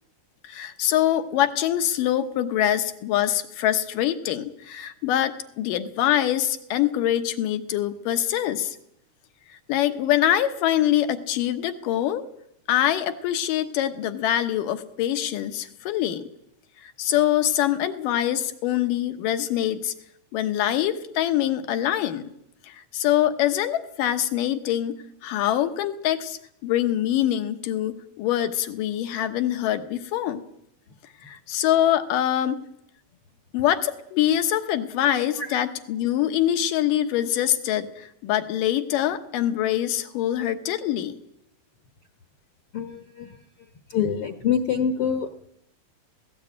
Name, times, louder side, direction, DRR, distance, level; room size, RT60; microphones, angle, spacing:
voice 1, 0.4-8.8 9.7-12.2 12.7-16.3 16.8-19.9 20.3-22.3 22.6-25.0 25.2-30.4 31.2-32.6 33.5-41.2, left 11 dB, 85° left, 9 dB, 2.8 m, -24 dB
voice 2, 42.7-43.3 43.9-45.3, left 7 dB, 60° left, 7 dB, 1.5 m, -25 dB
19.5 x 16.5 x 8.7 m, 0.78 s
omnidirectional pair, 3.8 m